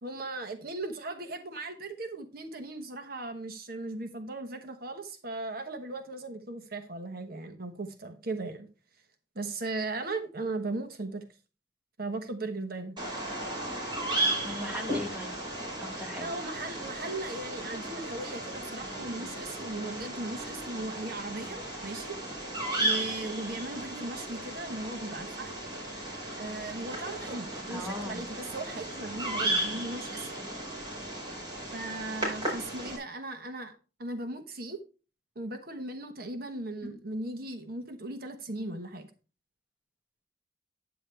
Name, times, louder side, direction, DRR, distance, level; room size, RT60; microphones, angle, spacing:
voice 1, 0.0-8.7 9.3-11.2 12.0-12.9 16.2-22.5 22.8-25.5 26.4-30.3 31.7-34.8 35.3-39.1, right 2 dB, 55° right, 1.1 m, -37 dB
Bird vocalization bird call bird song, 13.0-33.0, right 1 dB, 25° right, 4.8 m, -35 dB
voice 2, 14.4-15.4 15.8-16.3 27.7-28.2, left 1 dB, 10° right, 1.8 m, -38 dB
10.0 x 9.0 x 3.3 m
head